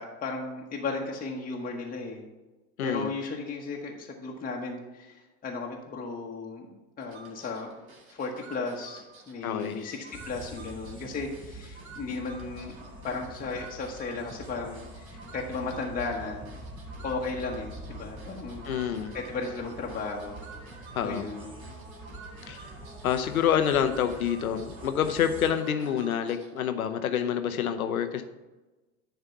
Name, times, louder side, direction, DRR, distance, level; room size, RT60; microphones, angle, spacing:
voice 1, 0.0-2.3 2.8-6.6 7.0-7.7 8.1-16.4 17.0-20.4 21.0-21.5, left 4 dB, 20° left, -1 dB, 1.1 m, -35 dB
voice 2, 2.8-3.1 9.4-9.8 18.6-19.2 20.9-21.3 22.5-22.7 23.0-28.2, left 8 dB, 80° left, 8 dB, 0.8 m, -27 dB
sound 1, 7.0-26.7, right 3 dB, 70° right, 1.7 m, -49 dB
sound 2, 10.1-25.5, right 1 dB, 10° right, 1.0 m, -46 dB
10.0 x 3.5 x 5.6 m, 1.1 s
figure-of-eight pair, 80°, 42 cm